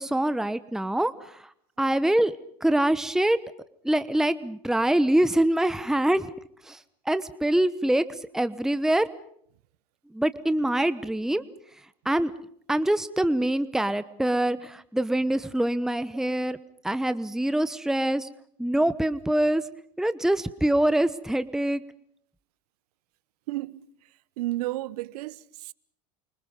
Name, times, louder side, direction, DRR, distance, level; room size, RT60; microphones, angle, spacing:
voice 1, 0.0-1.5 1.8-2.3 2.6-3.4 3.8-6.3 6.6-6.8 7.1-9.1 10.1-11.4 12.0-12.3 12.7-16.6 16.8-18.3 18.6-19.6 20.0-21.8, right 1 dB, ahead, 1.1 m, -24 dB
voice 2, 23.5-23.9 24.4-25.7, right 17 dB, 70° right, 1.0 m, -32 dB
29.0 x 25.0 x 5.4 m
hypercardioid pair, 85°, 21 cm